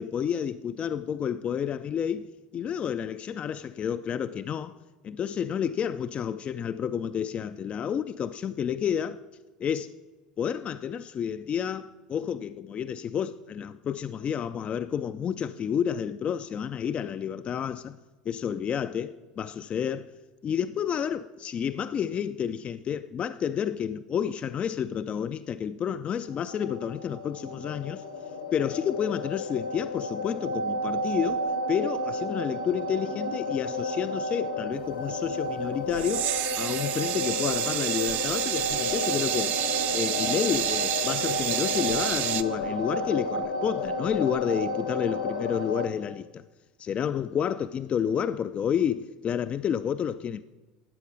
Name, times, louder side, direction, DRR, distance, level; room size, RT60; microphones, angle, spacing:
voice 1, 0.0-4.7 5.0-9.2 9.6-9.9 10.4-18.0 18.3-20.1 20.4-28.0 28.5-39.6 39.9-46.4 46.8-50.4, left 8 dB, 30° left, 0.3 m, -30 dB
sound 1, 26.3-45.9, left 1 dB, 80° left, 1.4 m, -32 dB
sound 2, 35.9-42.4, right 12 dB, 45° right, 0.5 m, -29 dB
13.5 x 9.0 x 3.9 m
figure-of-eight pair, 75°, 4 cm